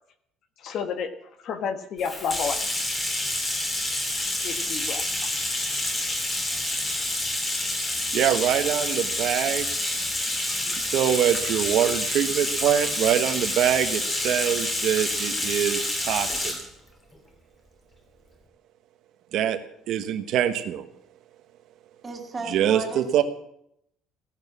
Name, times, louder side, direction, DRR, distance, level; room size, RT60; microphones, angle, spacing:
voice 1, 0.6-1.1 1.4-2.6 4.4-5.3, left 6 dB, 45° left, 10 dB, 1.3 m, -31 dB
Bathtub (filling or washing), 2.0-16.7, left 1 dB, 15° left, 2.5 m, -28 dB
voice 2, 8.1-9.7 10.8-16.5 19.3-19.6 19.9-20.8 22.5-23.2, right 10 dB, 55° right, 8 dB, 1.3 m, -24 dB
voice 3, 22.0-23.2, right 3 dB, 15° right, 3 dB, 2.4 m, -34 dB
16.0 x 11.0 x 7.4 m, 0.73 s
cardioid pair, 175°, 0 cm